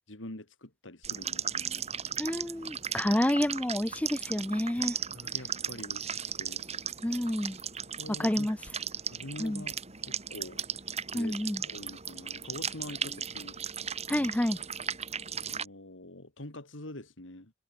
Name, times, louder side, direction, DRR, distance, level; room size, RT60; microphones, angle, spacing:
voice 1, 0.1-2.0 4.8-6.6 8.0-8.5 9.1-9.8 10.0-10.6 10.9-13.6 14.1-14.3 15.4-17.5, left 1 dB, 80° left, 3.4 m, -45 dB
sound 1, 1.0-15.7, right 8 dB, 35° right, 7.0 m, -37 dB
voice 2, 2.2-5.0 7.0-7.6 8.2-8.6 9.4-9.6 11.1-11.6 14.1-14.6, left 1 dB, 5° left, 0.4 m, -29 dB
head